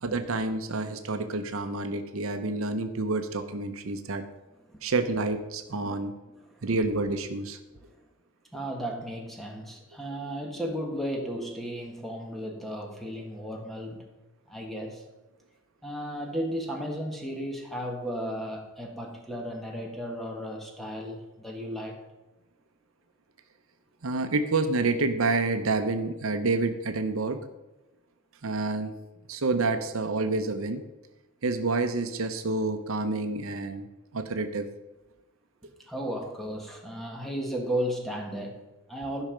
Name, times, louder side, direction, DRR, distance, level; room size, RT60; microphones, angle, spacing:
voice 1, 0.0-4.2 4.8-6.1 6.6-7.6 24.0-27.4 28.4-29.0 29.3-30.8 31.4-33.9 34.1-34.7, right 3 dB, 70° right, 8 dB, 0.7 m, -28 dB
voice 2, 6.3-6.7 7.7-7.8 8.5-14.0 14.5-15.0 15.8-22.0 35.9-39.2, equal, ahead, 0 dB, 1.5 m, -34 dB
12.0 x 5.6 x 5.0 m, 1.0 s
head